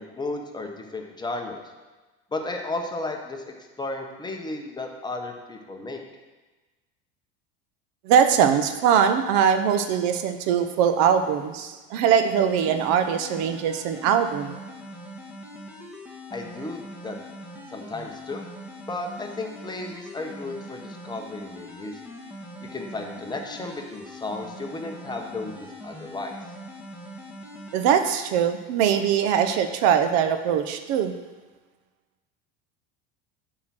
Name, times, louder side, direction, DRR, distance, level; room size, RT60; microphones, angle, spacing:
voice 1, 0.0-1.6 2.3-3.4 3.8-6.0 16.3-17.2 17.7-18.5 18.9-22.0 22.7-26.3, left 2 dB, 15° left, 2 dB, 1.1 m, -34 dB
voice 2, 8.0-14.6 27.7-31.1, right 8 dB, 65° right, 8 dB, 0.8 m, -21 dB
sound 1, 12.2-28.2, equal, 5° right, 1.6 m, -42 dB
8.7 x 4.7 x 5.9 m, 1.2 s
supercardioid pair, 115°, 30 cm